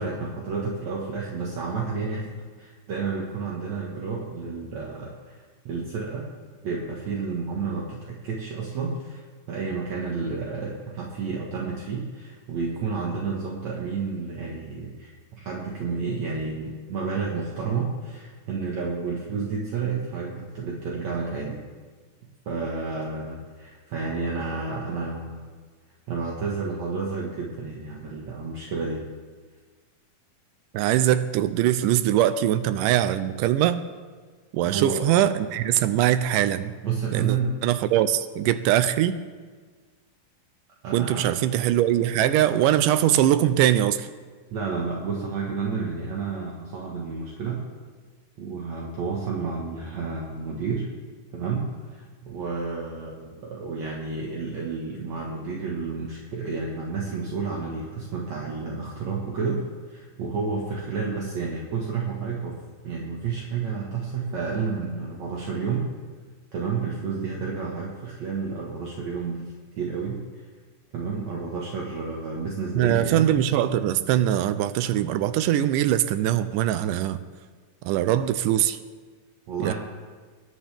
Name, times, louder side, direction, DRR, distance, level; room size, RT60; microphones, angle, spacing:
voice 1, 0.0-2.3 2.6-5.4 5.7-6.2 6.6-21.6 22.5-25.5 26.1-29.0 34.7-35.0 36.8-37.5 40.8-41.3 44.5-47.6 48.4-50.9 51.3-59.6 59.9-62.6 62.8-65.9 66.5-70.4 70.9-73.3 79.5-79.7, right 4 dB, 60° right, -3 dB, 2.6 m, -30 dB
voice 2, 30.7-33.8 34.5-36.7 37.1-37.4 37.6-39.2 40.9-44.1 72.8-77.2 77.9-78.8 79.6-79.7, right 12 dB, 90° right, 11 dB, 2.2 m, -22 dB
24.5 x 11.0 x 3.4 m, 1.5 s
omnidirectional pair, 3.7 m